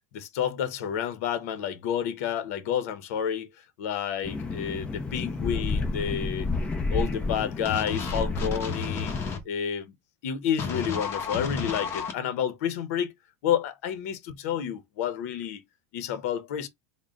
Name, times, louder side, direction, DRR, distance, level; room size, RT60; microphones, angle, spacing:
voice 1, 0.1-6.5 6.9-9.1 9.4-9.9 10.2-13.1 13.4-15.6 15.9-16.7, left 9 dB, 75° left, 0.8 m, -30 dB
sound 1, 4.2-9.3, left 3 dB, 15° left, 0.7 m, -31 dB
sound 2, 7.6-9.4 10.6-12.1, left 5 dB, 30° left, 1.2 m, -32 dB
3.7 x 2.2 x 3.7 m
supercardioid pair, 145°, 8 cm